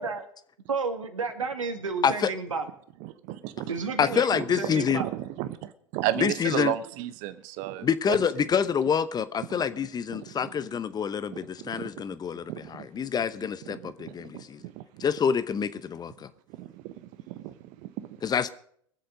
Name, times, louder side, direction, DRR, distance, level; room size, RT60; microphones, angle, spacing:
voice 1, 0.7-2.7 3.7-5.1, right 4 dB, 85° right, 1.9 m, -31 dB
voice 2, 3.0-3.7 4.4-8.5 10.1-10.4 11.6-12.0 12.5-12.9 13.7-15.0 16.6-18.1, right 13 dB, 50° right, 0.9 m, -34 dB
voice 3, 4.0-5.0 6.2-6.7 7.8-14.6 15.0-16.3 18.2-18.5, left 7 dB, 25° left, 0.8 m, -27 dB
23.0 x 7.8 x 5.2 m
hypercardioid pair, 90°, 16 cm